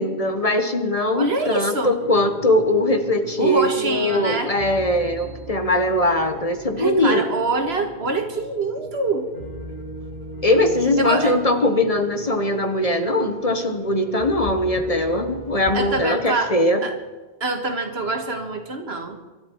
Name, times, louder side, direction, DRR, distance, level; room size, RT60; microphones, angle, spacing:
voice 1, 0.0-7.2 10.4-16.8, left 1 dB, 35° left, 7 dB, 1.3 m, -21 dB
voice 2, 1.1-1.9 3.4-4.5 6.8-9.3 11.0-11.4 15.7-16.5 16.8-16.9 17.4-19.2, right 2 dB, 80° right, 5 dB, 2.1 m, -25 dB
sound 1, 2.0-16.2, right 1 dB, 50° left, 2.4 m, -38 dB
25.0 x 12.5 x 4.7 m, 1.3 s
omnidirectional pair, 1.1 m